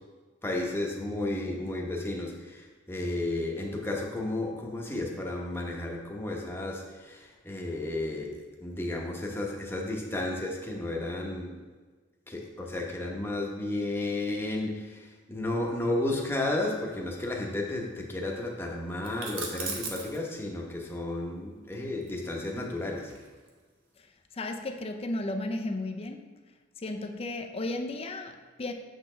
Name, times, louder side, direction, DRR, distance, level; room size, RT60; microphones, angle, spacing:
voice 1, 0.4-11.5 12.3-23.1, left 2 dB, 10° left, -1 dB, 1.0 m, -33 dB
sound 1, 19.0-20.2 22.0-23.6, right 4 dB, 80° right, 1.1 m, -38 dB
voice 2, 24.3-26.2 26.8-28.7, left 2 dB, 30° left, 5 dB, 0.5 m, -34 dB
7.1 x 6.3 x 3.3 m, 1.4 s
head